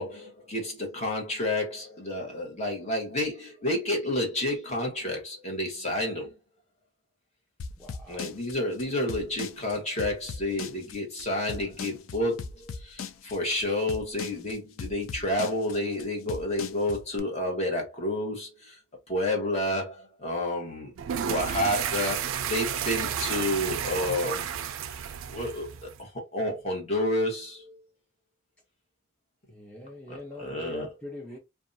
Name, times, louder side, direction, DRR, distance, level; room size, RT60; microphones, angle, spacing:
voice 1, 0.0-6.3 8.1-18.8 19.1-20.9 21.3-24.5 25.3-27.8 30.1-30.9, left 1 dB, 35° left, 1.1 m, -30 dB
sound 1, 7.6-17.2, left 5 dB, 85° left, 0.4 m, -38 dB
voice 2, 7.8-8.3 29.5-31.4, left 1 dB, 5° left, 0.6 m, -43 dB
sound 2, 21.0-26.0, right 8 dB, 80° right, 0.3 m, -32 dB
2.6 x 2.2 x 2.6 m
head